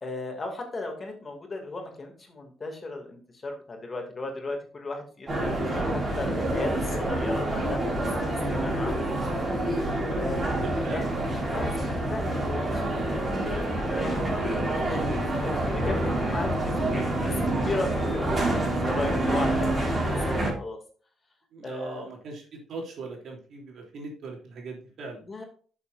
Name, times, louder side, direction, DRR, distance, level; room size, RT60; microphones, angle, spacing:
voice 1, 0.0-8.1 8.4-9.4 10.2-11.0 11.5-20.0 20.3-20.8 21.6-22.1 25.2-25.5, left 2 dB, 35° left, 3 dB, 2.5 m, -36 dB
sound 1, 5.3-20.5, right 1 dB, 30° right, 4.9 m, -27 dB
voice 2, 10.6-11.1 21.5-25.2, right 3 dB, 65° right, 0 dB, 3.3 m, -39 dB
11.0 x 7.0 x 2.6 m, 0.42 s
cardioid pair, 90°, 0 cm